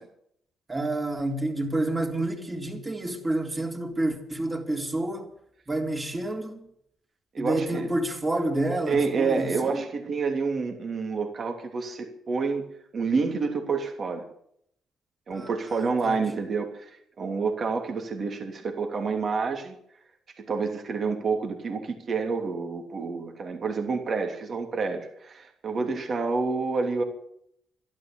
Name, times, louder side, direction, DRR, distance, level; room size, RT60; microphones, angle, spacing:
voice 1, 0.7-5.3 5.7-6.6 7.4-9.8 15.3-16.2, right 1 dB, 20° right, 3.8 m, -29 dB
voice 2, 7.3-7.9 8.9-14.2 15.3-19.7 20.4-27.0, right 4 dB, 50° right, 3.0 m, -28 dB
12.5 x 12.0 x 9.0 m
cardioid pair, 90°, 0 cm